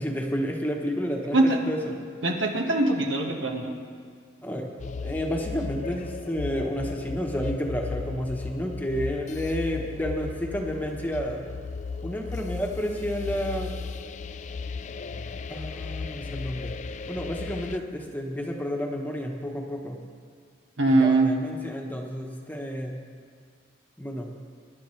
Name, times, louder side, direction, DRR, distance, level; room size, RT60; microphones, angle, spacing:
voice 1, 0.0-2.0 4.4-4.7 5.0-11.4 12.0-13.7 15.5-16.7 17.1-20.0 20.9-23.0 24.0-24.3, equal, 10° left, 1 dB, 1.0 m, -31 dB
voice 2, 1.3-1.7 2.2-3.7 20.8-21.3, right 2 dB, 80° right, 2 dB, 1.5 m, -22 dB
sound 1, 4.8-17.8, left 4 dB, 40° left, 0.4 m, -36 dB
23.5 x 11.0 x 3.2 m, 2.1 s
head